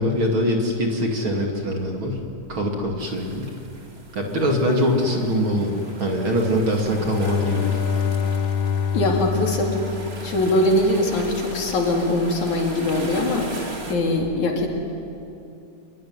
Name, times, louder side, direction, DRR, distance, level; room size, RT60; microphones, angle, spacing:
voice 1, 0.0-2.2 2.5-3.5 4.1-7.8, equal, 40° right, 1 dB, 3.2 m, -23 dB
sound 1, 3.0-13.9, right 2 dB, 20° right, 2.3 m, -40 dB
Bowed string instrument, 6.8-10.8, left 7 dB, 85° left, 1.3 m, -26 dB
voice 2, 8.9-9.8 10.2-13.6 13.9-14.7, left 1 dB, 65° left, 1 dB, 4.4 m, -22 dB
26.5 x 22.5 x 9.7 m, 2.7 s
omnidirectional pair, 3.7 m